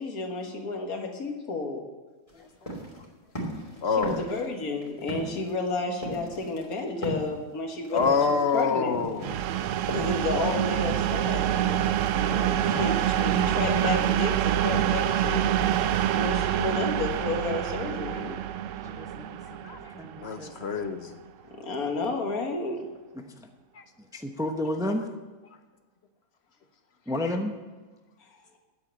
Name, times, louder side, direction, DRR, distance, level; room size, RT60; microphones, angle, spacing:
voice 1, 0.0-1.8 4.0-8.9 9.9-15.6 16.1-18.5 21.4-22.8, left 3 dB, 80° left, 3 dB, 2.0 m, -31 dB
sound 1, 2.3-11.3 11.6-16.6, right 1 dB, 20° left, 3.0 m, -38 dB
voice 2, 2.3-2.7 18.8-19.4 19.9-20.5 20.9-21.0 23.2-23.5 24.1-25.1 27.1-27.5, left 1 dB, 5° right, 5 dB, 0.7 m, -32 dB
voice 3, 3.8-4.3 7.9-9.4 19.6-19.9 20.2-21.2 23.7-23.8, left 5 dB, 55° left, 8 dB, 0.9 m, -27 dB
sound 2, 9.2-20.8, right 11 dB, 70° right, 0.9 m, -26 dB
9.4 x 8.2 x 8.7 m, 1.3 s
omnidirectional pair, 1.5 m